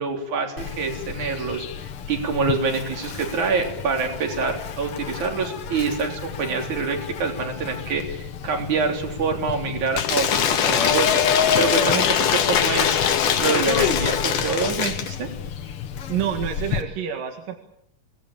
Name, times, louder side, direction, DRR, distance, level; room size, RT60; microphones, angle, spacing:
voice 1, 0.0-1.6 2.1-13.0 13.4-15.3, right 4 dB, 60° right, 3 dB, 4.9 m, -26 dB
Insect, 0.6-16.8, left 8 dB, 55° left, 1.8 m, -34 dB
Cheering / Applause / Crowd, 9.9-15.2, left 8 dB, 75° left, 3.1 m, -21 dB
voice 2, 16.1-17.6, right 9 dB, 80° right, 4 dB, 3.5 m, -27 dB
26.5 x 18.5 x 8.8 m, 0.76 s
omnidirectional pair, 3.8 m